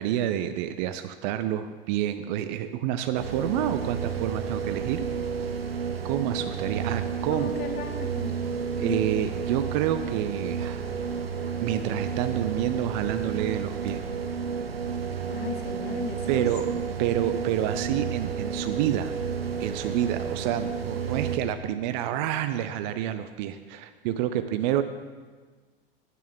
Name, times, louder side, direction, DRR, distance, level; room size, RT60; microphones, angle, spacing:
voice 1, 0.0-5.0 6.0-7.5 8.8-10.9 11.6-14.0 16.3-19.2 19.6-24.8, right 11 dB, 50° right, 10 dB, 0.5 m, -28 dB
sound 1, 3.1-21.4, right 6 dB, 85° right, 0.7 m, -31 dB
voice 2, 7.3-8.4 8.8-9.1 15.3-16.5, left 6 dB, 35° left, 6 dB, 1.0 m, -36 dB
9.1 x 8.4 x 3.6 m, 1.4 s
figure-of-eight pair, 85°, 29 cm